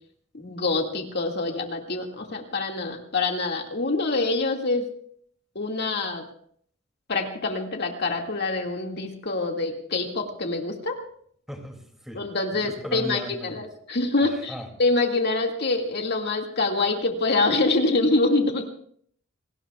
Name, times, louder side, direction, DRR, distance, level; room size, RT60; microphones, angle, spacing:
voice 1, 0.3-4.8 5.6-6.2 7.1-11.0 12.1-18.6, left 3 dB, 55° left, 2 dB, 2.1 m, -25 dB
voice 2, 11.5-12.2 12.5-13.6 14.5-14.7, equal, ahead, 2 dB, 2.6 m, -36 dB
28.0 x 19.0 x 2.4 m, 0.62 s
head